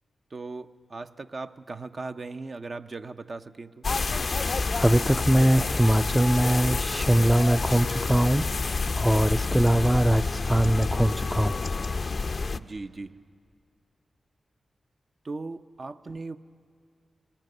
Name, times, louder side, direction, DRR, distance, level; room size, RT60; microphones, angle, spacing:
voice 1, 0.3-3.8 12.5-13.1 15.2-16.4, right 3 dB, 55° right, 7 dB, 0.6 m, -38 dB
sound 1, 3.8-12.6, left 4 dB, 60° left, 0.5 m, -28 dB
voice 2, 4.8-8.5 8.9-11.5, right 1 dB, 5° right, 12 dB, 0.4 m, -22 dB
21.0 x 18.5 x 6.6 m, 2.3 s
supercardioid pair, 40°, 0 cm